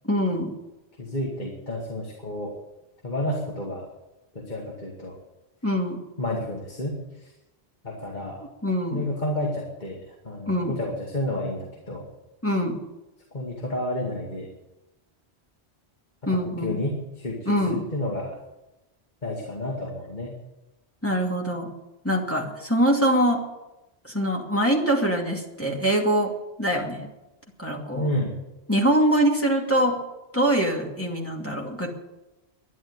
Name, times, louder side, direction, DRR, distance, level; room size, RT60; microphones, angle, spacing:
voice 1, 0.0-0.5 5.6-6.0 8.6-9.0 10.5-10.8 12.4-12.8 16.3-16.8 17.5-17.9 21.0-21.7 22.0-23.4 24.0-27.1 27.6-28.1 28.7-30.0 30.3-31.9, equal, 10° left, -1 dB, 2.4 m, -24 dB
voice 2, 1.0-2.6 3.0-3.9 4.3-5.2 6.2-7.3 7.8-8.5 8.9-12.1 13.3-14.5 16.2-18.4 19.2-20.4 28.0-28.4, left 1 dB, 45° left, -3 dB, 2.5 m, -31 dB
11.5 x 11.0 x 9.2 m, 0.99 s
omnidirectional pair, 1.1 m